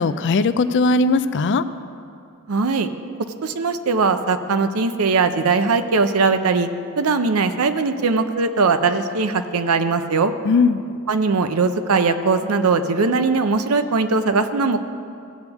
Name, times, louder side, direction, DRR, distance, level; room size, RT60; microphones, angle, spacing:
voice 1, 0.0-1.6 10.4-10.8, left 3 dB, 55° left, 12 dB, 0.4 m, -18 dB
voice 2, 2.5-2.9 3.4-6.7 7.0-10.3 11.1-14.8, right 4 dB, 80° right, 9 dB, 0.6 m, -20 dB
17.0 x 8.1 x 3.5 m, 2.4 s
head